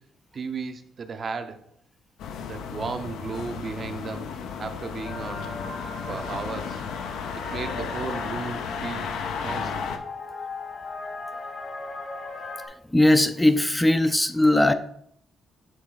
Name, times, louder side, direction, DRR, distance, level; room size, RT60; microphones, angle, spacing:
voice 1, 0.3-1.6 2.4-4.3 4.6-5.5 6.1-6.8 7.4-9.1 9.4-9.8, right 4 dB, 45° right, 8 dB, 0.6 m, -34 dB
sound 1, 2.2-10.0, left 6 dB, 85° left, 0.6 m, -34 dB
sound 2, 5.0-12.7, left 3 dB, 55° left, 1.4 m, -38 dB
voice 2, 12.9-14.7, left 1 dB, 10° left, 9 dB, 0.4 m, -19 dB
9.0 x 3.2 x 3.9 m, 0.67 s
cardioid pair, 90°, 0 cm